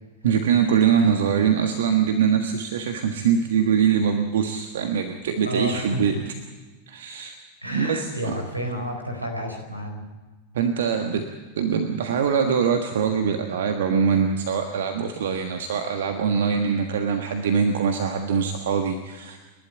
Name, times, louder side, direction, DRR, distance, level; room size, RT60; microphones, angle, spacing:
voice 1, 0.2-6.2 6.9-7.3 7.7-8.4 10.5-11.3 11.6-19.4, right 7 dB, 60° right, 6 dB, 1.5 m, -23 dB
voice 2, 5.5-6.2 7.6-10.0, equal, 85° right, 5 dB, 4.3 m, -30 dB
29.5 x 12.0 x 9.1 m, 1.2 s
figure-of-eight pair, 90°, 0 cm